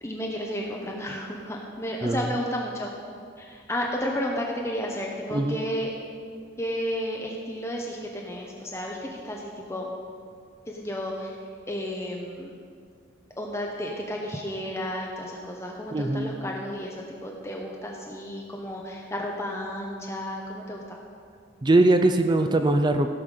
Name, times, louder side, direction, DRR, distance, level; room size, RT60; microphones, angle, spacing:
voice 1, 0.0-2.9 3.4-5.9 6.6-9.9 10.7-11.4 11.7-12.5 13.4-21.0, equal, 15° left, -1 dB, 0.9 m, -32 dB
voice 2, 5.3-5.6 15.9-16.3 21.6-23.1, right 2 dB, 20° right, 7 dB, 0.4 m, -21 dB
16.0 x 5.8 x 6.6 m, 2.2 s
head